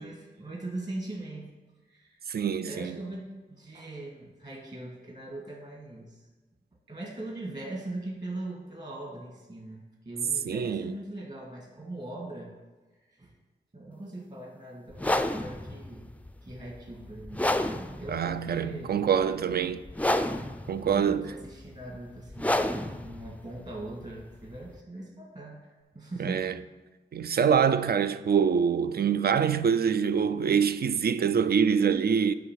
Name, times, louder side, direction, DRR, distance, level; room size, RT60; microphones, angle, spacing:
voice 1, 0.0-1.5 1.8-2.3 2.6-6.3 6.9-12.6 13.0-13.4 13.7-16.1 16.4-17.5 17.9-19.0 20.8-26.6, right 2 dB, 40° right, 1.8 m, -41 dB
voice 2, 2.3-3.0 10.5-10.9 18.1-19.8 20.7-21.2 26.2-26.5 27.1-32.3, right 7 dB, 60° right, 0.4 m, -25 dB
sound 1, 14.9-24.8, left 1 dB, 10° left, 0.4 m, -31 dB
9.3 x 3.1 x 6.5 m
cardioid pair, 50°, 18 cm